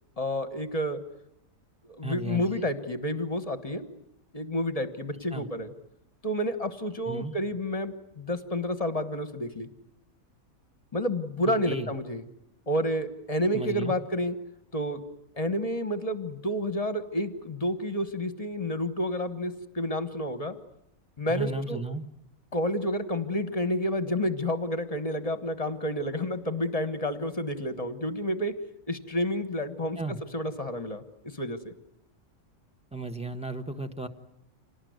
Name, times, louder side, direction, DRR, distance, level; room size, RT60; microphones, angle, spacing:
voice 1, 0.2-1.0 1.9-3.9 4.3-5.7 6.2-9.7 10.9-12.2 12.7-14.3 14.7-15.0 15.4-20.5 21.2-21.8 22.5-28.5 28.9-30.0 30.3-31.0 31.3-31.7, equal, 25° left, 10 dB, 1.4 m, -30 dB
voice 2, 2.0-2.6 5.3-5.4 7.1-7.4 11.7-11.9 13.5-13.9 21.3-22.0 30.0-30.2 32.9-34.1, right 2 dB, 5° right, 7 dB, 1.2 m, -34 dB
27.0 x 18.5 x 9.5 m, 0.84 s
omnidirectional pair, 1.5 m